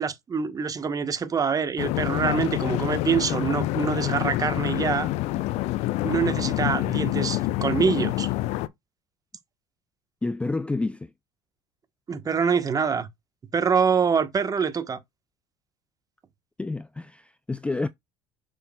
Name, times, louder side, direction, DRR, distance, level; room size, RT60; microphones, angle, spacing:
voice 1, 0.0-5.1 6.0-8.3 12.1-13.1 13.5-15.0, right 6 dB, 30° right, 1.2 m, -25 dB
sound 1, 1.8-8.7, left 17 dB, 60° left, 0.6 m, -27 dB
voice 2, 10.2-11.1 16.6-17.9, left 3 dB, 10° left, 0.4 m, -29 dB
6.9 x 6.0 x 2.3 m
hypercardioid pair, 75°, 12 cm